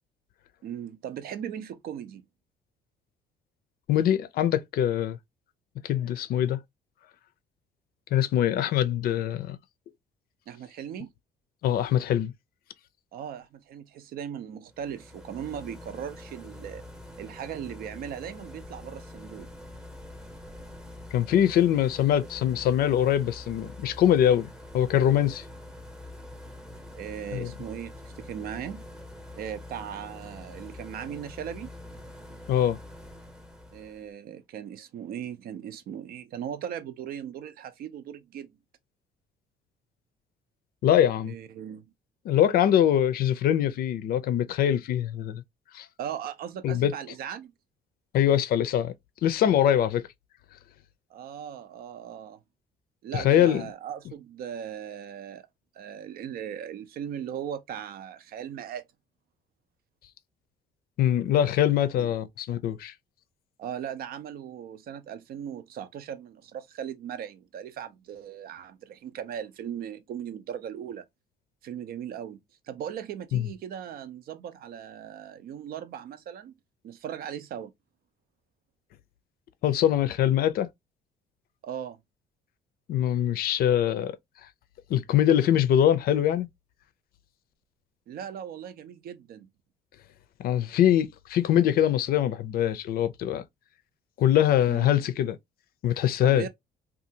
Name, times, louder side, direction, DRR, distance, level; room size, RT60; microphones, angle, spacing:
voice 1, 0.6-2.2 10.5-11.1 13.1-16.8 17.2-19.5 26.9-28.8 29.4-31.7 33.7-38.6 41.2-41.9 46.0-47.5 51.1-52.4 53.0-55.5 55.7-58.8 62.0-62.1 63.6-71.0 71.6-76.5 76.8-77.7 81.6-82.0 88.1-89.5 94.7-94.9 96.2-96.5, right 9 dB, 60° right, 0.5 m, -38 dB
voice 2, 3.9-5.2 5.8-6.6 8.1-9.6 11.6-12.3 21.1-24.5 24.7-25.4 27.3-27.5 32.5-32.8 40.8-41.3 42.2-45.4 45.7-45.9 46.6-46.9 48.1-48.9 49.2-50.0 53.1-53.7 61.0-62.9 73.3-73.5 79.6-80.7 82.9-84.2 84.9-86.5 90.4-93.4 94.2-95.4 95.8-96.5, left 10 dB, 60° left, 0.5 m, -23 dB
sound 1, 14.7-34.1, left 1 dB, 5° right, 0.8 m, -45 dB
2.7 x 2.3 x 2.7 m
cardioid pair, 110°, 17 cm